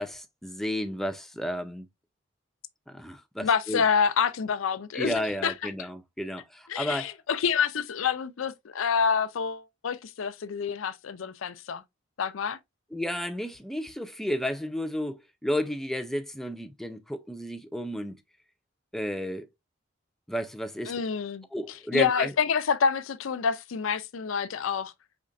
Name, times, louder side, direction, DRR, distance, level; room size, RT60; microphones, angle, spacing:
voice 1, 0.0-1.9 2.9-3.8 4.9-7.1 12.9-18.2 18.9-19.5 20.3-20.9 21.5-22.3, equal, ahead, 0.4 m, -32 dB
voice 2, 3.4-5.5 6.7-11.8 12.2-12.6 20.9-21.5 21.9-24.9, left 6 dB, 90° left, 0.5 m, -27 dB
5.1 x 3.2 x 2.6 m
head